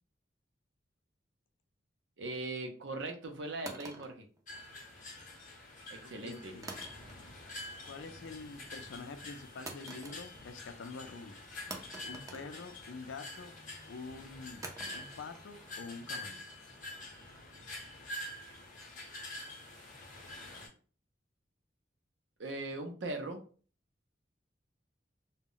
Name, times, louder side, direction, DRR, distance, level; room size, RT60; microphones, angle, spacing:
voice 1, 2.2-4.3 5.9-6.5 22.4-23.4, right 2 dB, 75° right, 5 dB, 0.6 m, -39 dB
sound 1, 3.7-5.1 6.6-7.5 7.8-8.2 9.7-10.6 10.9-11.0 11.7-13.2 14.6-17.6, right 2 dB, 20° right, 0.4 m, -49 dB
sound 2, 4.5-20.7, left 1 dB, 45° left, 0.7 m, -47 dB
voice 2, 6.0-6.7 7.8-11.4 12.0-13.5 13.9-14.6 14.9-16.4, left 4 dB, 80° left, 7 dB, 0.4 m, -46 dB
2.1 x 2.0 x 3.7 m, 0.40 s
head